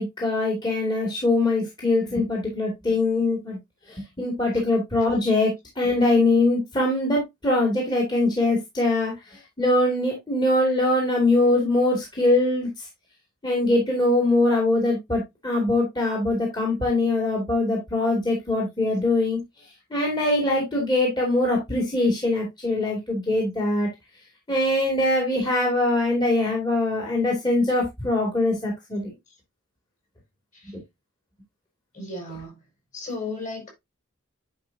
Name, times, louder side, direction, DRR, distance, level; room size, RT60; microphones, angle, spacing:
voice 1, 0.0-3.6 3.9-12.8 13.4-19.4 19.9-23.9 24.5-29.1, left 2 dB, 20° left, 2.5 m, -22 dB
voice 2, 31.9-32.6 32.9-33.7, left 2 dB, 35° left, 5.3 m, -34 dB
10.0 x 5.1 x 2.8 m
head